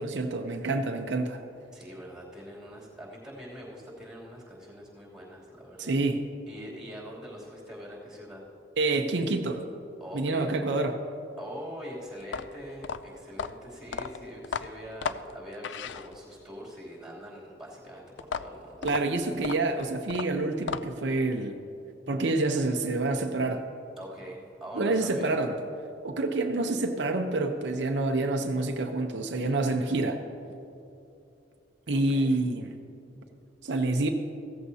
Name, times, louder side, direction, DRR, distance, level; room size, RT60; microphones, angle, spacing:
voice 1, 0.0-1.4 5.8-6.2 8.8-9.6 10.1-11.0 18.8-21.6 22.1-23.7 24.7-25.6 26.0-30.2 31.9-32.7 33.6-34.1, right 2 dB, 75° right, 4 dB, 0.7 m, -27 dB
voice 2, 1.7-6.0 6.5-8.4 10.0-10.5 11.4-18.8 24.0-25.3 29.5-30.0 31.9-32.3, equal, 5° right, -5 dB, 2.9 m, -43 dB
sound 1, 12.2-16.5 18.2-21.1, left 6 dB, 80° left, 0.4 m, -35 dB
15.5 x 14.0 x 2.8 m, 2.7 s
head